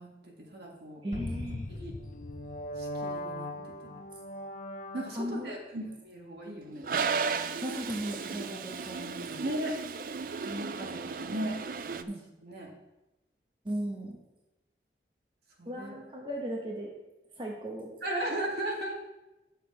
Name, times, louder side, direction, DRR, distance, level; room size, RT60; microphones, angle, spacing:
voice 1, 0.0-1.0 1.7-2.0 2.8-3.5 3.8-3.9 4.9-6.9 9.4-9.8 10.4-11.6 11.9-12.1 12.4-12.7 15.6-15.9 18.0-19.0, right 1 dB, 70° right, -1 dB, 1.9 m, -36 dB
voice 2, 1.0-1.7 5.1-5.5 7.6-9.4 12.1-12.2 13.6-14.2 15.6-16.9 17.4-17.9, equal, 30° right, -2 dB, 1.1 m, -36 dB
sound 1, 1.1-5.5, left 1 dB, 45° left, 0.6 m, -39 dB
Toilet flush, 6.8-12.0, right 5 dB, 50° right, 0.4 m, -34 dB
9.9 x 6.7 x 4.2 m, 0.99 s
head